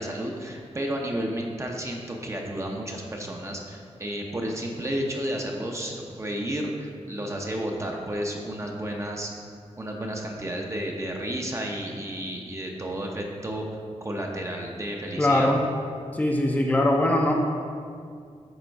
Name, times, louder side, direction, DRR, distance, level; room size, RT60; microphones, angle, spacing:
voice 1, 0.0-9.3 9.8-13.7 14.0-15.5, right 1 dB, 25° right, 0 dB, 0.7 m, -32 dB
voice 2, 15.2-15.7 16.1-17.3, left 1 dB, 15° left, 0 dB, 0.6 m, -21 dB
7.9 x 3.7 x 5.2 m, 2.2 s
wide cardioid pair, 110°, 12 cm